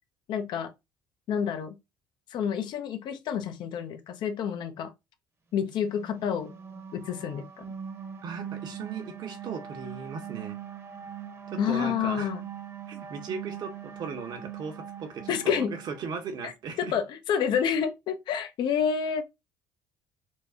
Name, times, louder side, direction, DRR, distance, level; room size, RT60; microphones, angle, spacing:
voice 1, 0.3-0.7 1.3-1.8 2.3-4.9 5.5-6.5 6.9-7.6 11.6-12.4 15.3-15.7 16.4-16.5 16.8-19.2, left 8 dB, 60° left, 0.7 m, -29 dB
sound 1, 5.8-16.3, right 9 dB, 35° right, 1.0 m, -41 dB
voice 2, 8.2-10.6 11.5-12.3 12.9-16.9, right 5 dB, 55° right, 1.0 m, -37 dB
4.6 x 2.2 x 2.7 m
supercardioid pair, 70°, 8 cm